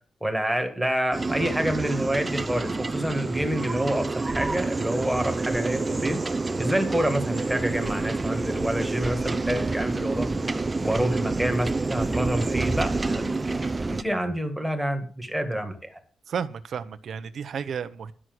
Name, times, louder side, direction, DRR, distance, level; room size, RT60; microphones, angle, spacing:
voice 1, 0.2-6.2 6.6-10.3 10.8-16.0, right 1 dB, 5° right, 5 dB, 1.8 m, -28 dB
sound 1, 1.1-14.0, right 3 dB, 20° right, 0.6 m, -28 dB
voice 2, 16.3-18.1, right 7 dB, 60° right, 11 dB, 0.8 m, -32 dB
11.0 x 6.2 x 7.8 m, 0.41 s
wide cardioid pair, 155°, 0 cm